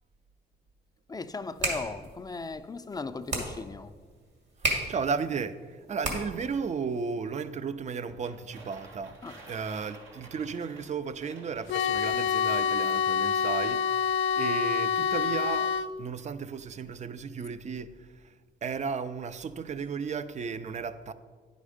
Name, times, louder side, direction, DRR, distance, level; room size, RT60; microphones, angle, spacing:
voice 1, 1.1-3.9 9.2-9.4, left 3 dB, 20° left, 0.4 m, -37 dB
sound 1, 1.3-6.6, right 1 dB, 60° right, 2.2 m, -35 dB
voice 2, 4.9-9.2 9.5-18.0 18.6-21.1, right 5 dB, 35° right, 0.5 m, -34 dB
sound 2, 8.1-12.2, right 2 dB, 85° right, 1.6 m, -51 dB
sound 3, 11.7-15.9, left 7 dB, 75° left, 0.4 m, -27 dB
10.0 x 5.3 x 5.0 m
cardioid pair, 90°, 20 cm